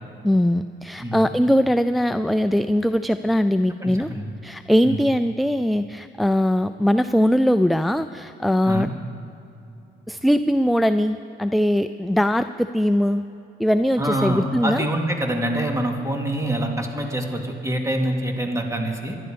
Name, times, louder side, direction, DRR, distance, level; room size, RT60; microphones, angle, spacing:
voice 1, 0.2-4.1 4.4-8.9 10.1-13.2 13.6-14.8, equal, ahead, 11 dB, 0.3 m, -21 dB
voice 2, 1.0-1.4 3.8-4.3 4.8-5.0 8.7-8.9 14.0-19.2, right 1 dB, 15° right, 2 dB, 2.4 m, -25 dB
25.5 x 11.0 x 5.2 m, 3.0 s
cardioid pair, 90°, 20 cm